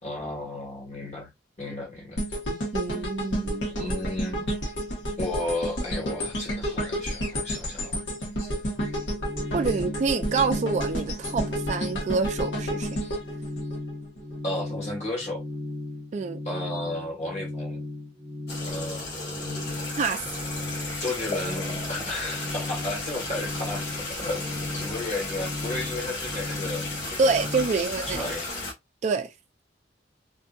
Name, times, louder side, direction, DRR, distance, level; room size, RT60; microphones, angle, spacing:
voice 1, 0.0-1.3 1.6-2.2 3.8-4.5 5.2-8.0 8.4-8.5 14.4-15.4 16.4-17.8 18.6-19.7 21.0-27.4 27.8-28.4, left 2 dB, 40° left, 1.4 m, -34 dB
sound 1, 2.2-14.3 14.8-14.9, equal, 80° left, 1.2 m, -31 dB
voice 2, 2.7-3.7 9.5-13.0 16.1-16.4 20.0-20.3 27.2-28.3 29.0-29.3, right 4 dB, 40° right, 0.3 m, -27 dB
sound 2, 8.8-27.7, left 2 dB, ahead, 0.9 m, -36 dB
sound 3, 18.5-28.7, left 2 dB, 60° left, 1.0 m, -34 dB
2.6 x 2.6 x 2.3 m
head